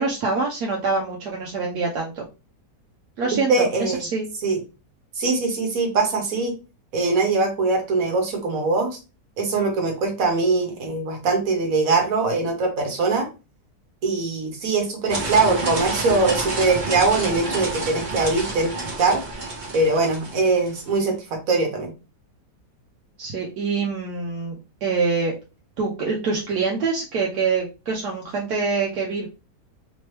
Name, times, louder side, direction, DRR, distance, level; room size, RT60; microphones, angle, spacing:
voice 1, 0.0-2.3 3.2-4.3 23.2-24.6 24.8-25.3 25.8-29.3, right 4 dB, 75° right, -1 dB, 1.2 m, -25 dB
voice 2, 3.3-4.1 4.4-4.6 5.2-6.6 6.9-9.0 9.4-13.3 14.0-19.2 19.7-21.9, right 3 dB, 60° right, 3 dB, 1.5 m, -22 dB
sound 1, 15.1-20.9, right 2 dB, 40° right, 0.8 m, -29 dB
3.4 x 3.0 x 3.2 m, 0.30 s
omnidirectional pair, 1.8 m